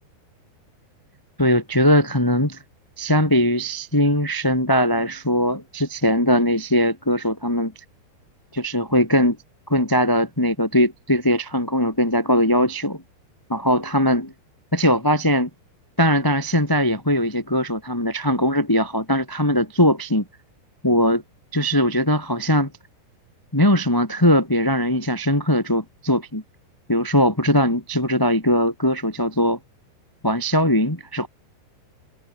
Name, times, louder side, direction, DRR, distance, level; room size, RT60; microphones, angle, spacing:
voice 1, 1.4-2.6 3.0-7.7 8.5-9.4 9.7-13.0 13.5-14.3 14.7-15.5 16.0-20.2 20.8-21.2 21.5-22.7 23.5-26.4 26.9-29.6 30.2-31.3, equal, 5° left, 1.8 m, -20 dB
omnidirectional pair, 5.2 m